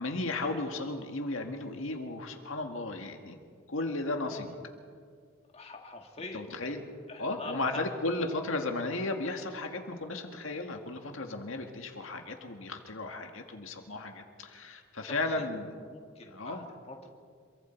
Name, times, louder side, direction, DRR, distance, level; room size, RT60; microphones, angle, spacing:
voice 1, 0.0-3.4 3.7-4.6 6.3-6.8 7.2-15.8 16.3-16.7, left 2 dB, 70° left, 4 dB, 1.9 m, -35 dB
voice 2, 5.5-6.4 7.1-7.9 8.2-8.6 15.1-17.1, left 3 dB, 30° left, 2 dB, 2.0 m, -44 dB
27.0 x 23.5 x 4.6 m, 2.1 s
head